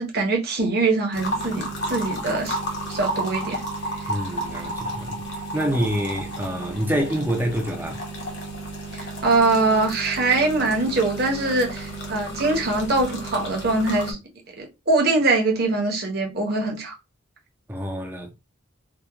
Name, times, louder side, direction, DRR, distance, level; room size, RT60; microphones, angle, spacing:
voice 1, 0.0-2.6 2.9-3.6 8.9-14.2 14.6-16.9, right 3 dB, 50° right, 0.7 m, -23 dB
sound 1, 1.1-14.1, right 1 dB, 55° left, 0.8 m, -32 dB
voice 2, 4.1-5.2 5.5-8.0 17.7-18.3, equal, 10° right, 0.3 m, -26 dB
2.8 x 2.1 x 2.3 m
head